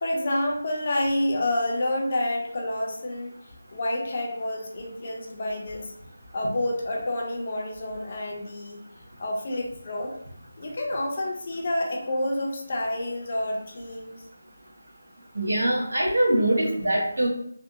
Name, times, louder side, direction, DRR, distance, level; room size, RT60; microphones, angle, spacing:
voice 1, 0.0-3.3 3.7-5.9 6.3-8.8 9.2-10.1 10.6-14.2, left 1 dB, 25° left, 0 dB, 0.4 m, -28 dB
voice 2, 15.3-17.3, right 1 dB, 65° right, -2 dB, 1.1 m, -23 dB
3.3 x 2.5 x 2.6 m, 0.70 s
figure-of-eight pair, 180°, 0 cm